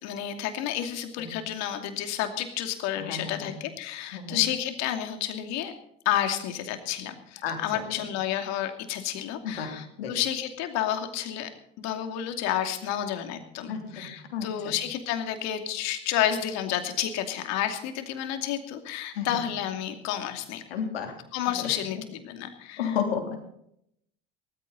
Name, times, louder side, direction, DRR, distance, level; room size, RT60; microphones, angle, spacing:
voice 1, 0.0-5.7 6.0-11.5 11.8-20.6 21.3-22.9, left 11 dB, 65° left, 6 dB, 2.7 m, -30 dB
voice 2, 3.0-3.6 4.1-4.4 7.4-8.1 9.4-10.3 13.7-14.7 19.1-19.4 20.7-22.0 22.8-23.4, left 7 dB, 85° left, 4 dB, 3.3 m, -33 dB
18.0 x 14.5 x 4.1 m, 0.73 s
hypercardioid pair, 75°, 29 cm